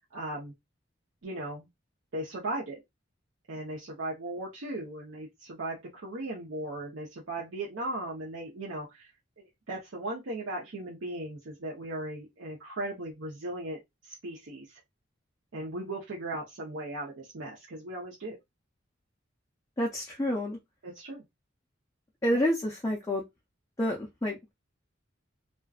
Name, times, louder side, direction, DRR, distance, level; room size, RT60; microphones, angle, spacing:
voice 1, 0.1-0.5 1.2-1.7 2.1-2.8 3.5-9.1 9.4-14.8 15.5-18.4 20.8-21.2 22.3-22.4, right 1 dB, 75° right, 0.7 m, -37 dB
voice 2, 19.8-20.6 22.2-23.2 23.8-24.5, equal, 15° left, 0.4 m, -29 dB
2.5 x 2.2 x 2.3 m
head